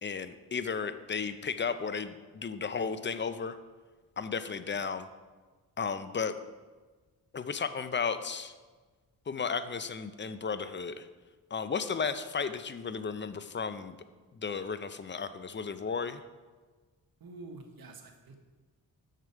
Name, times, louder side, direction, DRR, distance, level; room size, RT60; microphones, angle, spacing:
voice 1, 0.0-3.6 4.2-5.1 5.8-6.3 7.3-8.5 9.3-11.1 11.5-14.0 14.3-16.2, left 5 dB, 30° left, 11 dB, 0.5 m, -34 dB
voice 2, 17.2-18.3, right 3 dB, 60° right, 4 dB, 1.3 m, -47 dB
6.8 x 6.3 x 4.7 m, 1.3 s
cardioid pair, 55°, 40 cm